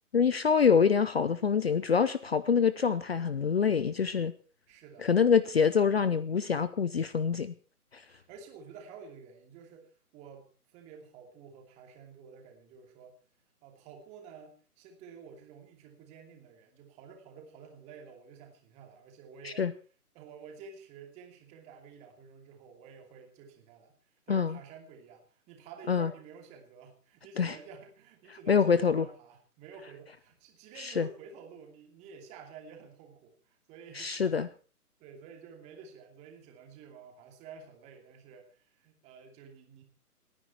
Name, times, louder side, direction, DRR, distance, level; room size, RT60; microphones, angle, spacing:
voice 1, 0.1-4.3 5.0-7.5 7.9-8.0 19.4-19.7 24.3-24.6 25.9-26.1 27.4-27.5 28.5-29.0 30.8-31.1 33.9-34.5, left 6 dB, 40° left, 16 dB, 0.8 m, -25 dB
voice 2, 4.7-5.2 8.0-13.2 13.6-19.7 20.1-34.5 35.0-39.8, right 6 dB, 15° right, 3 dB, 2.6 m, -51 dB
28.0 x 9.9 x 4.4 m, 0.38 s
figure-of-eight pair, 135°, 45 cm